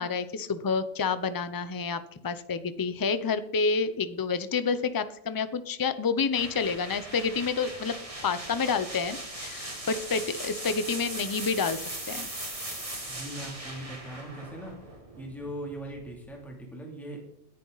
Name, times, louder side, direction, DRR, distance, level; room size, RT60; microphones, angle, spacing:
voice 1, 0.0-8.0 8.2-12.3, left 5 dB, 25° left, 12 dB, 0.6 m, -29 dB
sound 1, 6.3-16.1, right 1 dB, 30° right, 2.4 m, -39 dB
voice 2, 13.1-14.8 15.2-17.3, right 1 dB, ahead, -1 dB, 2.9 m, -40 dB
18.0 x 10.5 x 4.1 m, 0.75 s
omnidirectional pair, 1.2 m